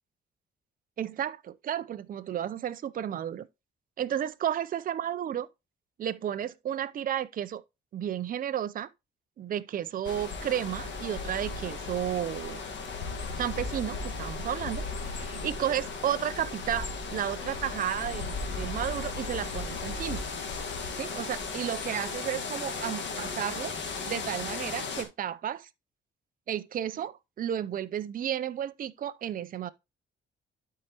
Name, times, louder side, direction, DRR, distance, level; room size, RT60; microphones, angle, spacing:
voice 1, 1.0-3.5 4.0-5.5 6.0-7.6 7.9-8.9 9.4-12.6 13.4-20.2 21.0-23.8 24.1-25.7 26.5-29.7, right 10 dB, 45° right, 0.5 m, -32 dB
sound 1, 10.0-25.0, left 4 dB, 65° left, 1.6 m, -36 dB
12.0 x 4.7 x 2.9 m
cardioid pair, 90°, 20 cm